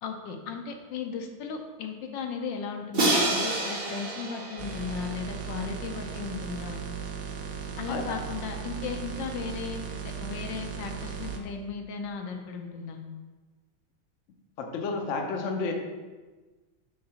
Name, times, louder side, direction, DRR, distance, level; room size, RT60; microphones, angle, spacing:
voice 1, 0.0-6.8 7.8-13.0, left 5 dB, 75° left, 4 dB, 1.4 m, -36 dB
Crash cymbal, 2.9-5.9, right 2 dB, 40° right, 0.9 m, -29 dB
sound 1, 4.6-11.4, right 7 dB, 65° right, 1.0 m, -37 dB
voice 2, 14.6-15.7, left 4 dB, 60° left, 2 dB, 0.8 m, -31 dB
5.6 x 3.8 x 5.6 m, 1.3 s
omnidirectional pair, 2.1 m